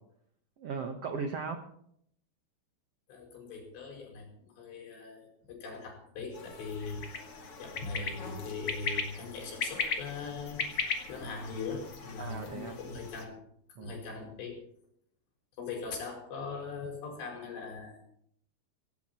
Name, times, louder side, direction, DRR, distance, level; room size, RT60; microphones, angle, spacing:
voice 1, 0.6-1.7 12.2-12.8 13.8-14.0, right 5 dB, 75° right, 6 dB, 1.4 m, -37 dB
voice 2, 3.1-7.1 7.6-10.7 11.1-13.4 13.8-14.6 15.6-18.0, left 4 dB, 90° left, 1 dB, 7.1 m, -40 dB
sound 1, 6.3-13.3, left 5 dB, 40° left, 2.6 m, -38 dB
17.5 x 17.5 x 4.4 m, 0.68 s
omnidirectional pair, 4.8 m